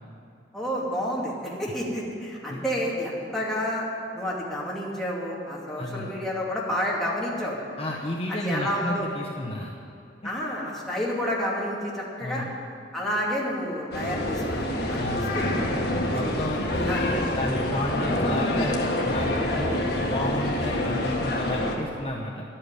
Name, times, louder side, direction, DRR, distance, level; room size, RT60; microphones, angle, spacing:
voice 1, 0.5-3.9 4.1-7.6 8.3-9.1 10.2-12.4 12.9-15.5 16.1-16.2 16.8-17.0, equal, ahead, -5 dB, 2.6 m, -30 dB
voice 2, 7.8-9.7 10.2-10.3 12.2-12.5 15.0-15.3 16.1-19.7 20.0-22.4, left 1 dB, 35° left, -1 dB, 1.0 m, -32 dB
sound 1, 13.9-21.7, left 1 dB, 65° left, 1.8 m, -26 dB
11.5 x 8.8 x 9.7 m, 2.5 s
head